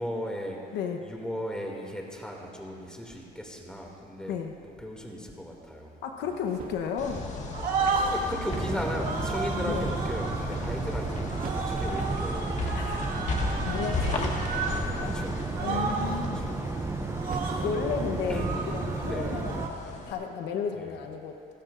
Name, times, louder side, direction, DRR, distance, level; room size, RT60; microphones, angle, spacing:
voice 1, 0.0-0.6 1.0-4.4 4.6-6.3 8.1-11.4 11.7-12.6 14.1-14.3 15.0-15.3 15.6-16.6 18.3-18.6 19.0-19.4 20.7-21.0, equal, 5° left, -1 dB, 2.4 m, -36 dB
voice 2, 0.7-1.1 4.3-4.5 6.0-7.2 9.6-9.9 12.7-15.1 15.6-16.4 17.6-21.4, left 6 dB, 80° left, 4 dB, 1.0 m, -33 dB
sound 1, 6.5-7.2 7.5-8.4 9.0-10.4 11.3-14.8 15.1-15.3 15.5-16.3 17.1-17.7 18.3-19.7, right 4 dB, 55° right, 1.8 m, -33 dB
sound 2, 7.0-20.1, left 3 dB, 45° left, 1.8 m, -36 dB
sound 3, 8.5-19.7, right 4 dB, 15° right, 0.5 m, -33 dB
27.0 x 13.5 x 2.6 m, 2.5 s
cardioid pair, 110°, 17 cm